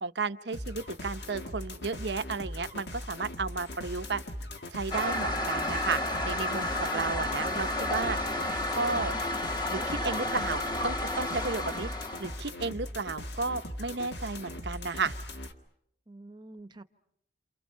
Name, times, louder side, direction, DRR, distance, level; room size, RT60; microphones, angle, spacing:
voice 1, 0.0-4.2 4.7-8.2 8.7-9.1 9.7-11.9 12.2-15.1, right 4 dB, 75° right, 0.9 m, -33 dB
sound 1, 0.5-15.5, left 1 dB, 70° left, 1.8 m, -40 dB
Toilet flush, 4.9-12.4, left 1 dB, 25° left, 1.4 m, -31 dB
voice 2, 16.1-16.8, right 2 dB, 25° right, 0.9 m, -49 dB
29.0 x 28.0 x 5.7 m
head